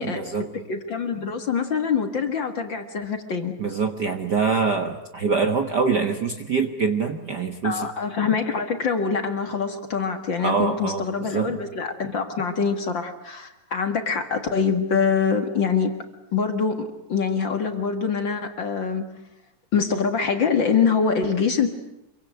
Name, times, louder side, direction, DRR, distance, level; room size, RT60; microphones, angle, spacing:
voice 1, 0.0-0.5 3.6-7.9 10.4-11.6, right 5 dB, 45° right, 6 dB, 1.4 m, -24 dB
voice 2, 0.5-3.5 7.6-15.9 16.3-19.1 19.7-21.7, left 6 dB, 45° left, 7 dB, 2.1 m, -24 dB
27.0 x 24.0 x 9.1 m, 0.87 s
omnidirectional pair, 3.4 m